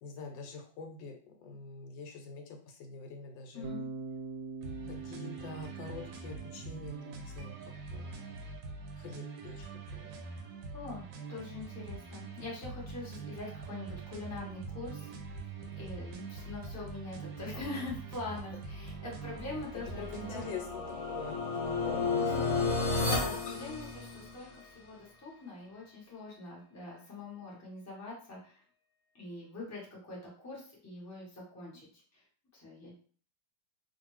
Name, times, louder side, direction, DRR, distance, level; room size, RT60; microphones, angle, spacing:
voice 1, 0.0-3.7 4.9-7.6 7.9-8.5 9.0-10.1 18.4-18.5 19.7-22.2, left 4 dB, 80° left, 4 dB, 1.3 m, -45 dB
voice 2, 3.5-3.9 10.3-20.5 22.0-22.7 22.9-28.6 29.1-31.9 32.1-32.2 32.5-32.9, left 3 dB, 15° left, -4 dB, 0.6 m, -44 dB
Bass guitar, 3.6-7.7, right 4 dB, 70° right, 1.0 m, -44 dB
sound 1, 4.6-20.6, right 4 dB, 85° right, 1.3 m, -44 dB
sound 2, 19.3-24.5, left 3 dB, 55° left, 1.0 m, -33 dB
2.6 x 2.5 x 3.0 m, 0.43 s
omnidirectional pair, 2.0 m